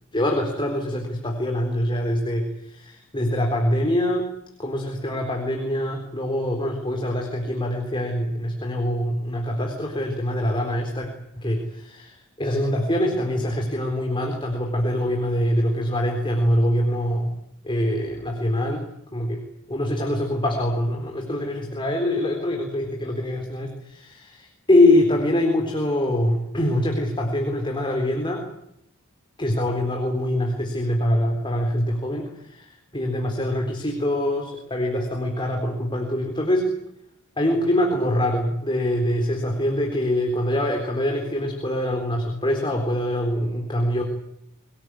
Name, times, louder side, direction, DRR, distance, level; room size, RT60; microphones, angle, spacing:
voice 1, 0.1-4.3 4.6-11.1 11.4-17.3 17.6-18.9 19.1-19.4 19.7-28.4 29.4-36.7 37.4-44.0, left 1 dB, 25° left, 2 dB, 4.0 m, -24 dB
25.0 x 19.0 x 9.9 m, 0.76 s
head